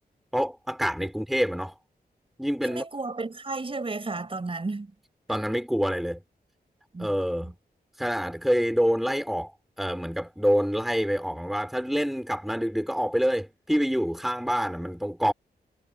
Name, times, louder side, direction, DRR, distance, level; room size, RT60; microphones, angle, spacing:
voice 1, 0.3-1.7 2.4-2.8 5.3-6.2 7.0-7.5 8.0-15.3, equal, ahead, 3.2 m, -26 dB
voice 2, 2.6-4.9 6.9-7.1 7.4-7.5, right 3 dB, 35° right, 5.7 m, -33 dB
wide cardioid pair, 115°, 17 cm